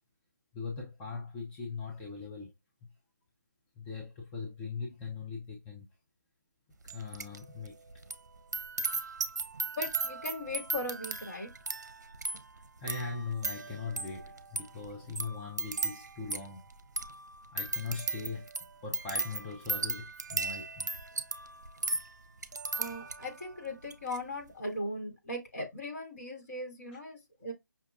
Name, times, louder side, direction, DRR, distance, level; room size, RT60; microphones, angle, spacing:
voice 1, 0.5-2.5 3.8-5.9 6.8-7.7 12.8-16.7 17.5-18.5 18.8-20.9 26.9-27.0, left 4 dB, 15° left, 0.6 m, -40 dB
sound 1, 6.9-7.4 7.6-23.4 23.8-24.2, right 3 dB, 70° right, 0.6 m, -37 dB
voice 2, 9.8-11.5 22.8-27.5, left 1 dB, 50° left, 2.1 m, -38 dB
5.6 x 2.3 x 2.3 m
figure-of-eight pair, 150°, 10 cm